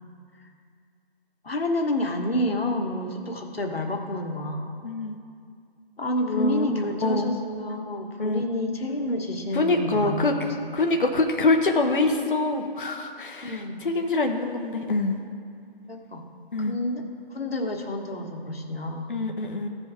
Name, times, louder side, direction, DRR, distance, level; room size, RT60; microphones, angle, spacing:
voice 1, 1.4-4.8 6.0-10.7 13.4-13.8 15.9-16.2 16.6-19.1, left 1 dB, 75° left, 3 dB, 1.5 m, -29 dB
voice 2, 4.8-5.2 6.3-7.4 8.2-8.5 9.5-10.3 10.7-15.2 16.5-16.8 19.1-19.7, left 3 dB, 55° left, 4 dB, 0.9 m, -25 dB
16.0 x 5.6 x 3.6 m, 2.3 s
figure-of-eight pair, 160°, 30 cm